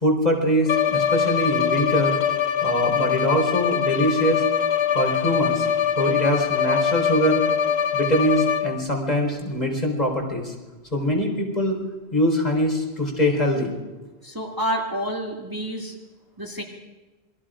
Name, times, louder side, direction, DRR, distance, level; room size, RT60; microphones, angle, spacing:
voice 1, 0.0-2.2 2.6-4.4 4.9-5.7 6.0-7.4 7.9-10.5 10.9-11.8 12.1-13.7, equal, 35° left, 0 dB, 4.4 m, -23 dB
Bowed string instrument, 0.7-8.9, left 8 dB, 70° left, 1.2 m, -23 dB
voice 2, 14.2-15.9 16.4-16.6, equal, 20° right, -1 dB, 2.2 m, -28 dB
27.5 x 22.0 x 5.1 m, 1.2 s
omnidirectional pair, 1.1 m